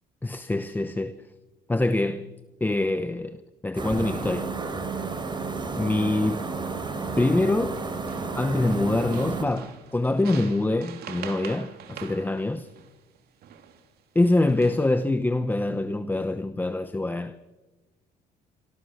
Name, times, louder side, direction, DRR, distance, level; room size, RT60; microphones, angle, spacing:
voice 1, 0.2-1.3 1.7-2.3 2.6-3.4 3.6-4.5 5.8-6.4 7.2-7.8 8.3-12.7 14.1-17.5, left 2 dB, 10° left, 0.9 m, -25 dB
sound 1, 3.8-9.4, right 4 dB, 25° right, 3.4 m, -31 dB
sound 2, 5.0-5.3 5.7-6.3 6.9-7.5 7.7-13.9 14.4-15.0, right 8 dB, 70° right, 3.2 m, -45 dB
27.0 x 24.5 x 6.5 m
cardioid pair, 110°, 17 cm